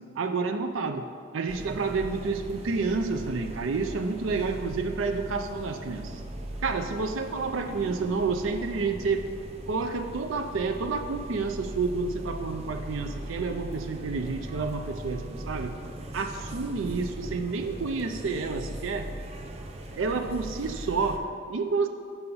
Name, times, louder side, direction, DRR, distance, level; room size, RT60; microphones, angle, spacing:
voice 1, 0.2-1.1 1.3-6.2 6.6-9.3 9.7-15.8 16.1-19.1 19.9-21.9, right 4 dB, 85° right, 6 dB, 0.5 m, -29 dB
sound 1, 1.5-21.2, right 1 dB, 30° right, 0.6 m, -39 dB
5.8 x 5.5 x 6.8 m, 2.2 s
head